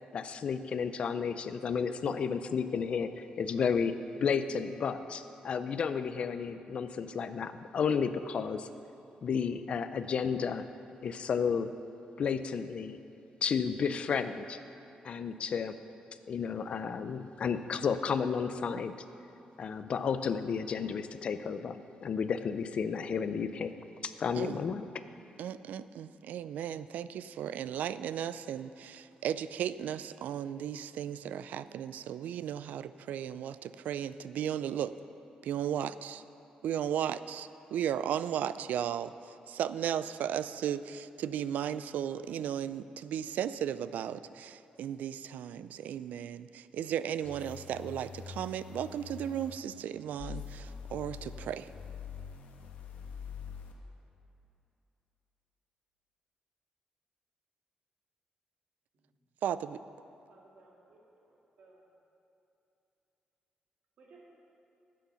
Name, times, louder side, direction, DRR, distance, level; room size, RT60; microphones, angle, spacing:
voice 1, 0.1-3.9 4.2-8.7 9.2-10.6 11.0-11.7 12.2-13.0 13.4-14.6 15.0-15.8 16.3-19.0 19.6-23.7 24.0-24.9, left 6 dB, 45° left, 11 dB, 0.4 m, -32 dB
voice 2, 25.4-35.0 35.4-36.2 36.6-51.7 59.4-59.8, right 9 dB, 80° right, 15 dB, 0.3 m, -35 dB
sound 1, 47.2-49.6 50.2-53.7, left 7 dB, 90° left, 1.1 m, -44 dB
voice 3, 60.3-61.8 64.0-64.2, right 3 dB, 55° right, -2 dB, 1.8 m, -60 dB
11.5 x 8.5 x 5.6 m, 2.9 s
wide cardioid pair, 180°, 3 cm